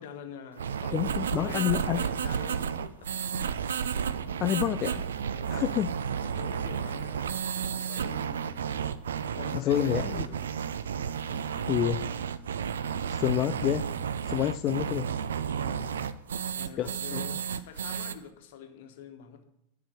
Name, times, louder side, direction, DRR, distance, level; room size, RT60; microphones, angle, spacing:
voice 1, 0.0-3.6 5.3-5.8 6.2-7.3 7.6-8.6 9.3-10.4 11.2-11.8 15.5-16.2 16.5-19.4, left 7 dB, 55° left, 6 dB, 1.1 m, -46 dB
sound 1, 0.6-18.1, right 7 dB, 65° right, 0.4 m, -32 dB
voice 2, 0.9-2.0 4.4-5.0 5.5-5.9 9.5-10.2 11.7-12.0 13.1-13.9 14.3-15.1 16.8-17.2, left 12 dB, 35° left, 10 dB, 0.3 m, -28 dB
9.9 x 4.9 x 6.7 m, 0.78 s
figure-of-eight pair, 90°, 0 cm